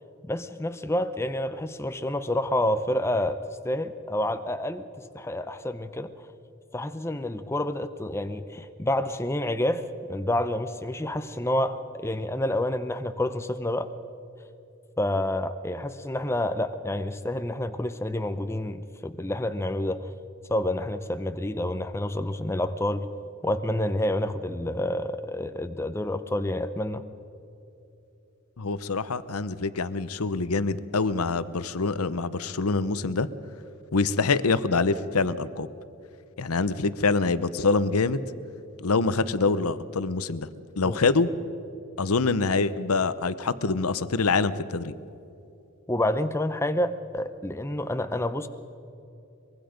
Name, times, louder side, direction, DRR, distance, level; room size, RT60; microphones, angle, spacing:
voice 1, 0.3-3.4 3.6-4.9 5.1-6.1 6.7-13.9 15.0-20.1 20.5-23.1 23.4-27.0 40.8-41.0 45.9-48.5, left 1 dB, 10° left, 9 dB, 0.6 m, -28 dB
voice 2, 28.6-33.3 33.9-35.7 36.4-38.2 38.8-40.5 40.8-41.3 42.0-44.9, left 4 dB, 85° left, 14 dB, 0.8 m, -25 dB
23.5 x 22.5 x 5.2 m, 2.8 s
head